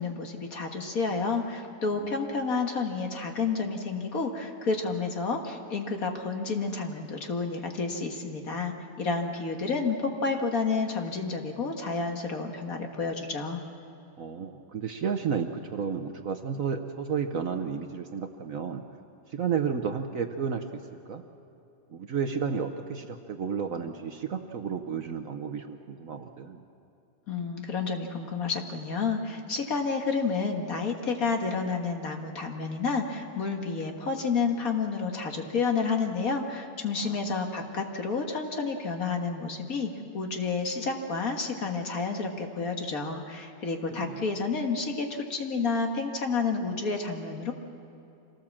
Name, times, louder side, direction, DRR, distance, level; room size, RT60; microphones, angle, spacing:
voice 1, 0.0-13.6 27.3-47.5, left 4 dB, 50° left, 3 dB, 1.9 m, -30 dB
voice 2, 14.2-18.8 19.3-21.2 21.9-26.6 37.0-37.3 43.9-44.3, right 6 dB, 55° right, 6 dB, 1.1 m, -32 dB
25.5 x 18.0 x 7.3 m, 2.7 s
omnidirectional pair, 2.0 m